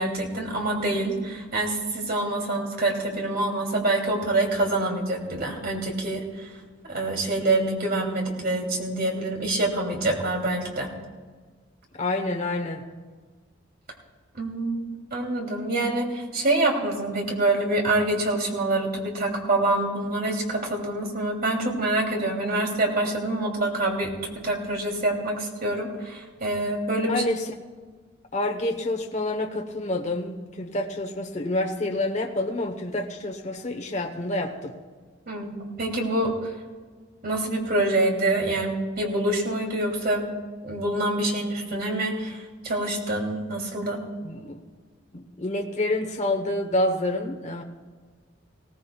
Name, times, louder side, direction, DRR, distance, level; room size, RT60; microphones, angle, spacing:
voice 1, 0.0-6.5 6.9-10.9 14.3-27.2 35.3-36.5 37.2-40.3 40.6-44.0, right 2 dB, 50° right, 1 dB, 2.7 m, -26 dB
voice 2, 12.0-12.8 27.1-27.5 28.3-34.7 44.2-44.6 45.1-47.6, left 1 dB, 40° left, 3 dB, 1.0 m, -28 dB
19.5 x 17.0 x 2.3 m, 1.5 s
head